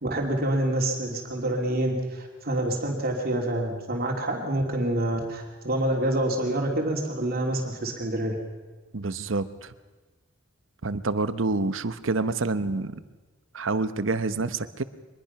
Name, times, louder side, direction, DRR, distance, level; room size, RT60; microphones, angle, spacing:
voice 1, 0.0-8.4, right 1 dB, 50° right, 1 dB, 3.1 m, -27 dB
voice 2, 8.9-9.7 10.8-13.0 13.5-14.8, right 3 dB, 80° right, 13 dB, 1.0 m, -27 dB
23.5 x 21.0 x 5.9 m, 1.2 s
head